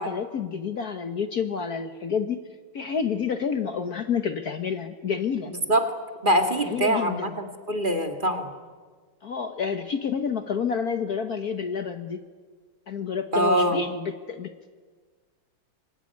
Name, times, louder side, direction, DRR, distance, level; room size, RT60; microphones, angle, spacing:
voice 1, 0.0-2.5 2.7-5.5 6.6-7.3 9.2-12.2 12.9-14.7, left 6 dB, 50° left, 8 dB, 1.4 m, -29 dB
voice 2, 6.2-8.5 13.3-13.8, right 1 dB, 25° right, 5 dB, 2.1 m, -23 dB
25.0 x 21.5 x 9.7 m, 1.5 s
omnidirectional pair, 2.3 m